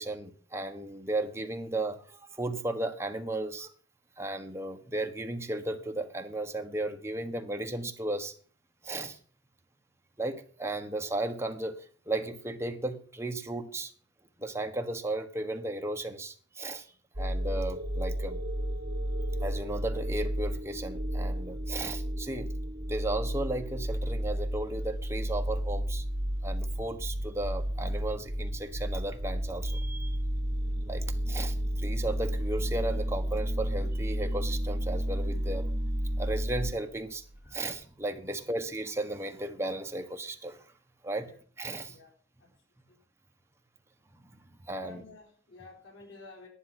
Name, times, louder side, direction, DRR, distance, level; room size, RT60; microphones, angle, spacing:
voice 1, 0.0-3.7 4.2-8.3 8.8-9.2 10.2-13.9 14.4-18.4 19.4-22.5 22.9-26.0 26.4-30.2 30.9-35.7 36.2-40.7 41.0-41.3 41.6-42.0 44.1-45.0, right 2 dB, 15° right, 1.3 m, -35 dB
sound 1, 17.1-36.7, equal, 50° right, 2.3 m, -32 dB
sound 2, 23.2-38.9 39.3-39.4, right 1 dB, 40° left, 2.6 m, -55 dB
voice 2, 41.8-42.5 42.9-43.0 44.8-46.5, left 3 dB, 80° left, 4.5 m, -52 dB
11.0 x 10.5 x 6.0 m
head